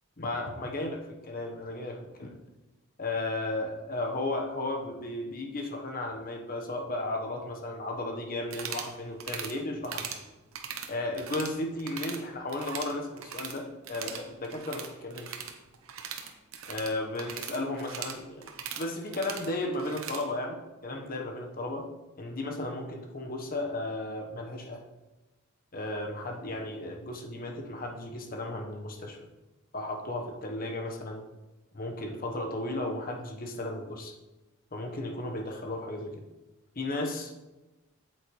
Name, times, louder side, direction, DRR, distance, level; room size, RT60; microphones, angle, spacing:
voice 1, 0.2-2.3 3.0-10.1 10.9-15.3 16.7-18.5 18.8-21.9 22.2-24.8 25.7-29.2 29.7-31.2 31.7-34.1 34.7-36.2 36.7-37.4, left 2 dB, 45° left, 2 dB, 1.1 m, -34 dB
sound 1, 8.4-8.9 9.2-9.5 9.8-10.2 10.5-11.5 11.8-12.2 12.5-13.6 13.8-20.2, right 7 dB, 75° right, 0.9 m, -40 dB
8.1 x 7.9 x 3.1 m, 1.1 s
head